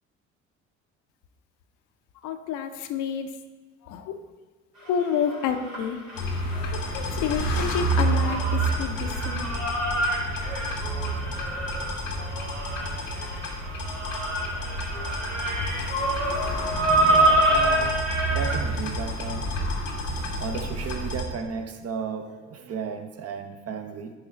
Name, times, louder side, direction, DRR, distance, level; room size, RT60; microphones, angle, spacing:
voice 1, 2.2-3.3 3.8-4.2 4.9-9.5, left 7 dB, 55° left, 7 dB, 0.7 m, -30 dB
sound 1, 4.8-6.9 7.1-18.7, right 1 dB, 75° right, 2.0 m, -27 dB
sound 2, 6.1-21.2, right 1 dB, 80° left, 1.1 m, -29 dB
voice 2, 16.8-18.0 18.3-19.4 20.4-24.1, right 6 dB, 40° right, 6 dB, 0.8 m, -34 dB
11.0 x 3.9 x 4.1 m, 1.3 s
figure-of-eight pair, 50°, 37 cm